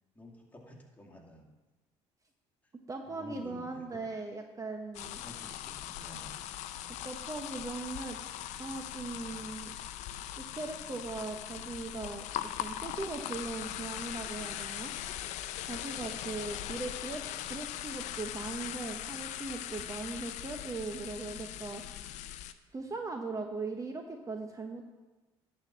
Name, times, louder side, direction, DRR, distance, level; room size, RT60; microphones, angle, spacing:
voice 1, 0.1-1.5 2.6-2.7 3.0-4.1 5.2-6.3, equal, 10° left, -1 dB, 2.3 m, -51 dB
voice 2, 2.9-5.2 7.0-8.2 8.6-9.7 10.4-12.3 12.6-14.9 15.6-21.8 22.7-24.9, right 3 dB, 25° right, 4 dB, 0.9 m, -39 dB
sound 1, 4.9-22.5, left 12 dB, 75° left, 0.5 m, -40 dB
11.5 x 4.3 x 7.3 m, 1.2 s
supercardioid pair, 75°, 12 cm